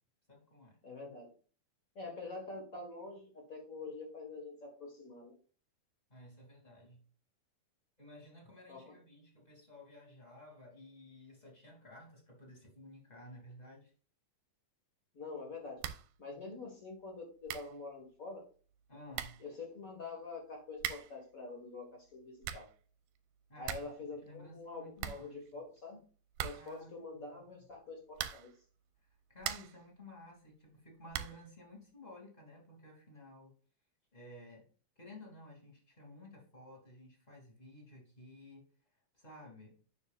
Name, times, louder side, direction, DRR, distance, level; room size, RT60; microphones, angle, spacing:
voice 1, 0.3-0.8 6.1-7.0 8.0-13.9 18.9-19.4 23.5-23.9 24.2-25.6 26.5-27.6 29.0-33.5 34.1-34.6 35.0-38.6 38.9-39.7, left 1 dB, 15° left, -2 dB, 2.2 m, -54 dB
voice 2, 0.8-1.3 1.9-5.3 8.7-8.9 15.1-15.8 16.2-18.4 19.4-22.7 23.6-26.0 26.4-28.5, left 3 dB, 45° left, 1 dB, 1.0 m, -46 dB
sound 1, 15.8-16.2 16.4-16.5 17.1-17.2 17.5-17.8 18.7-18.8 19.1-19.5 20.8-21.2 22.2-22.8 23.2-23.3 23.4-24.0 24.3-24.4 24.6-24.7 25.0-25.8 26.3-26.9 28.1-28.6 29.1-29.9 31.1-31.5, right 11 dB, 85° right, 2.4 m, -41 dB
9.6 x 6.9 x 2.4 m, 0.41 s
omnidirectional pair, 4.2 m